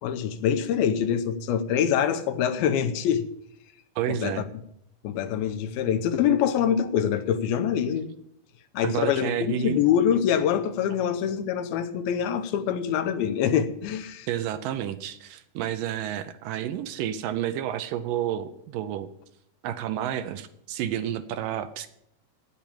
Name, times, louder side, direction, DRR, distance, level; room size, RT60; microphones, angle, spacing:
voice 1, 0.0-3.2 4.1-4.4 5.0-8.1 8.7-14.3, left 8 dB, 85° left, 8 dB, 2.7 m, -25 dB
voice 2, 4.0-4.5 8.8-9.8 14.3-19.1 19.6-21.9, right 10 dB, 80° right, 12 dB, 2.1 m, -30 dB
9.0 x 8.4 x 8.6 m, 0.76 s
omnidirectional pair, 4.2 m